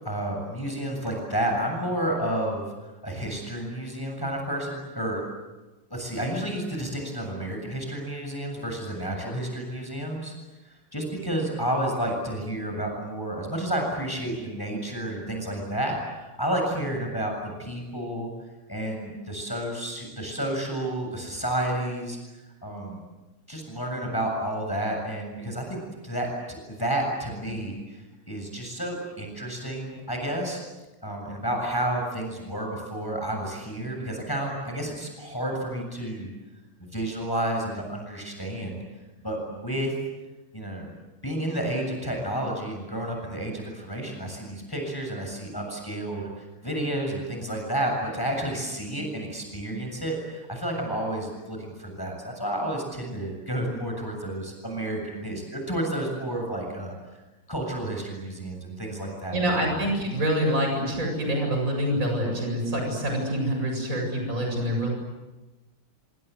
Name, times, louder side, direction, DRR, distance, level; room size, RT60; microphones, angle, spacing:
voice 1, 0.0-2.7 3.0-5.2 5.9-10.3 10.6-18.3 18.7-23.0 23.5-30.6 31.0-36.3 36.8-38.8 39.2-39.9 40.5-41.0 41.2-56.9 57.5-59.5, right 1 dB, 10° left, 1 dB, 7.3 m, -31 dB
voice 2, 59.3-64.9, equal, 35° right, 2 dB, 8.0 m, -26 dB
27.0 x 26.5 x 8.0 m, 1.1 s
omnidirectional pair, 2.4 m